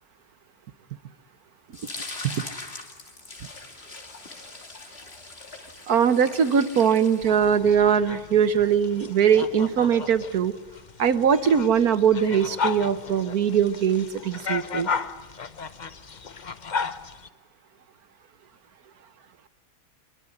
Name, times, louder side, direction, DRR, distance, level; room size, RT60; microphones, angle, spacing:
sound 1, 1.7-7.8, left 3 dB, 30° left, 2.7 m, -41 dB
voice 1, 5.9-10.6 11.0-14.9, right 7 dB, 55° right, 13 dB, 1.4 m, -21 dB
sound 2, 7.2-17.3, left 5 dB, 80° left, 0.4 m, -35 dB
25.0 x 22.5 x 9.9 m, 1.3 s
omnidirectional pair, 2.2 m